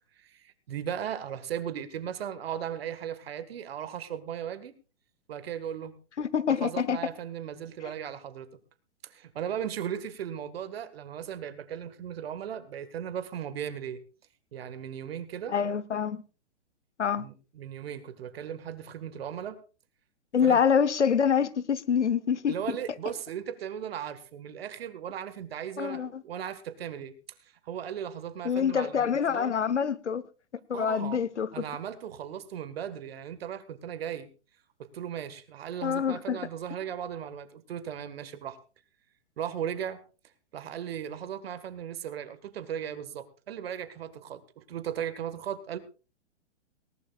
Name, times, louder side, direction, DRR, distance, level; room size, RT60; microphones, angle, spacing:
voice 1, 0.2-4.7 5.3-5.9 6.5-8.5 9.0-14.0 14.5-15.5 17.2-19.6 20.4-20.6 22.5-27.1 27.4-29.6 30.7-31.2 31.5-34.3 34.8-38.6 39.4-40.0 40.5-45.8, right 9 dB, 55° right, 1.8 m, -37 dB
voice 2, 6.2-7.0 15.5-16.2 17.0-17.3 20.3-22.8 25.8-26.2 28.4-30.2 30.7-31.6 35.8-36.4, left 7 dB, 80° left, 1.1 m, -26 dB
19.5 x 18.0 x 2.4 m
figure-of-eight pair, 115°, 35 cm